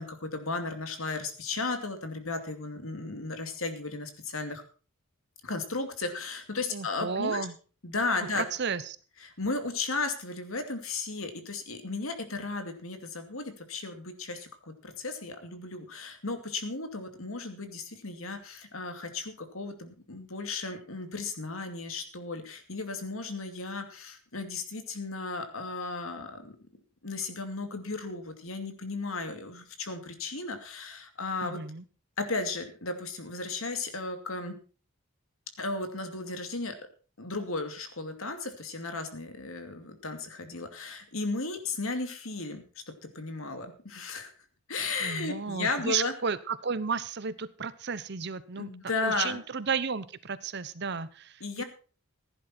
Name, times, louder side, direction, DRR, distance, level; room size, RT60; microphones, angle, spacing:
voice 1, 0.0-4.6 5.4-7.5 7.8-8.4 9.2-26.6 27.0-31.6 32.2-34.5 35.6-36.8 37.2-42.6 43.1-44.3 44.7-46.1 48.6-49.4 51.4-51.6, left 3 dB, 75° left, 6 dB, 2.5 m, -35 dB
voice 2, 6.7-7.5 8.2-9.0 31.4-31.8 45.0-48.7 49.0-51.6, right 5 dB, 55° right, 16 dB, 0.9 m, -33 dB
15.5 x 10.5 x 4.4 m, 0.38 s
head